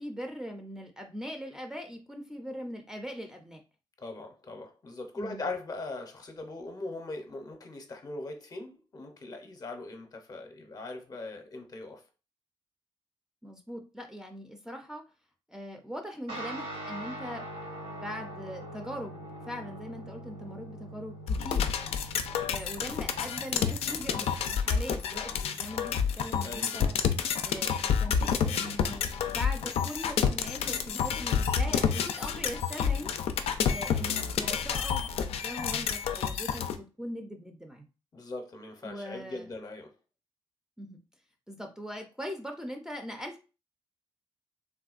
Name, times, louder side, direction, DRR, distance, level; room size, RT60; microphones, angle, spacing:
voice 1, 0.0-3.6 5.2-5.5 13.4-15.0 15.5-17.4 18.0-21.7 22.5-27.0 27.4-33.1 33.7-35.0 35.3-37.9 38.8-39.5 40.8-41.0 41.5-43.4, equal, 5° right, 3 dB, 0.5 m, -41 dB
voice 2, 4.0-12.0 26.4-26.7 38.1-39.9, left 2 dB, 40° left, 4 dB, 0.7 m, -40 dB
Guitar, 16.3-26.0, right 1 dB, 75° right, 1.3 m, -44 dB
sound 1, 21.3-36.8, left 7 dB, 80° left, 0.4 m, -29 dB
3.5 x 2.2 x 2.4 m, 0.32 s
cardioid pair, 85°, 10 cm